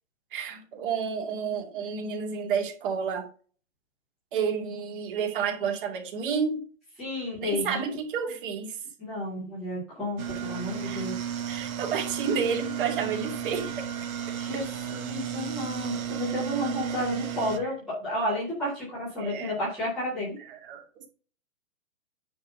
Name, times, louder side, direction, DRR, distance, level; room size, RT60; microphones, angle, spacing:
voice 1, 0.3-3.3 4.3-6.7 7.4-8.8 10.8-11.1 11.5-13.9 19.2-19.5 20.5-20.8, right 6 dB, 40° right, 3 dB, 2.3 m, -30 dB
voice 2, 7.0-7.8 9.0-11.2 14.4-14.6 14.9-20.4, left 1 dB, ahead, -13 dB, 0.4 m, -31 dB
sound 1, 10.2-17.6, right 9 dB, 80° right, 1.3 m, -34 dB
9.5 x 4.0 x 5.1 m, 0.40 s
hypercardioid pair, 150°, 41 cm